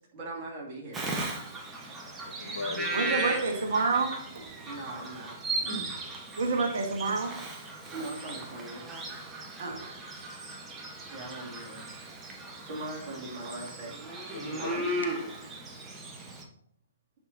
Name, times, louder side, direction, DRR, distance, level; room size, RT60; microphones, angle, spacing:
voice 1, 0.1-1.3 4.6-5.4 5.6-5.9 7.9-8.9 11.1-11.9 12.6-14.0 14.6-14.9, right 2 dB, 35° right, -2 dB, 2.5 m, -40 dB
Bird vocalization bird call bird song, 0.9-16.4, right 2 dB, 15° right, 1.1 m, -37 dB
voice 2, 2.3-3.3 14.3-15.4, left 4 dB, 65° left, 7 dB, 0.9 m, -38 dB
voice 3, 2.9-4.2 6.4-7.4 9.6-9.9, right 4 dB, 55° right, 4 dB, 1.2 m, -28 dB
8.4 x 5.7 x 2.8 m, 0.63 s
figure-of-eight pair, 120°, 0 cm